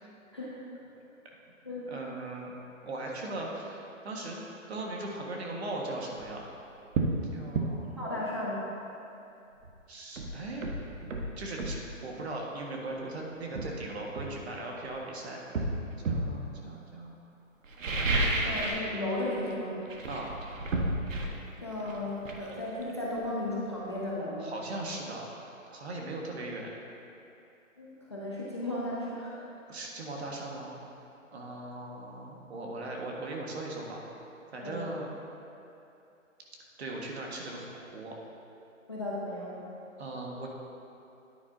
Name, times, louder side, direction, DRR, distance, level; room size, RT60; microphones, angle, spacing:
voice 1, 1.9-2.5 2.8-4.4 4.7-6.4 7.3-8.1 9.9-10.7 11.4-15.7 16.0-17.2 18.3-18.5 20.1-20.3 24.4-25.3 25.7-26.7 29.7-30.7 31.3-34.0 34.5-35.1 36.8-38.1 40.0-40.5, right 2 dB, 50° right, -1 dB, 1.4 m, -39 dB
sound 1, 6.1-6.3 6.9-7.2 7.5-7.7 9.6-9.7 10.2-11.8 12.9-13.0 13.5-14.9 15.5-16.3 17.6-18.9 19.2-19.5 19.8-23.4 23.7-23.8, right 2 dB, 70° right, 1.3 m, -32 dB
voice 2, 8.0-8.7 18.2-19.8 21.6-24.5 27.8-29.4 34.6-34.9 38.9-39.7, left 1 dB, 20° left, -7 dB, 0.5 m, -35 dB
9.8 x 9.6 x 2.6 m, 2.8 s
hypercardioid pair, 170°, 40 cm